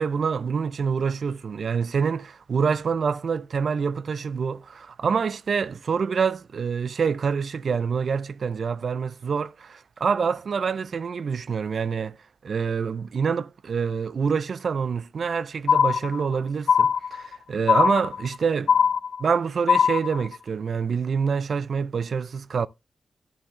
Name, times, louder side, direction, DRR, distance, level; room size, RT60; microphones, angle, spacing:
voice 1, 0.0-12.2 12.4-18.7 19.2-22.7, right 6 dB, 60° right, 0.4 m, -26 dB
sound 1, 15.7-16.4 16.7-17.4 17.7-18.4 18.7-19.4 19.7-20.4, left 7 dB, 90° left, 0.4 m, -21 dB
11.5 x 7.5 x 3.2 m
wide cardioid pair, 145°, 0 cm